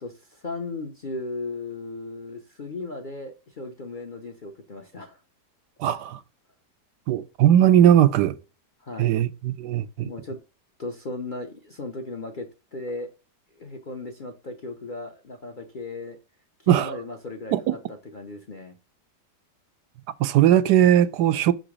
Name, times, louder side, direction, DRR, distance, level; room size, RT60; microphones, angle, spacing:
voice 1, 0.0-5.2 8.8-9.2 10.0-10.4 10.8-13.1 13.6-16.2 16.6-17.5 17.9-18.7, left 2 dB, 45° left, 0.6 m, -36 dB
voice 2, 5.8-6.2 7.1-8.4 9.0-10.1 16.7-17.0 17.5-17.7 20.2-21.5, right 11 dB, 80° right, 1.2 m, -19 dB
6.1 x 3.9 x 4.8 m
omnidirectional pair, 1.8 m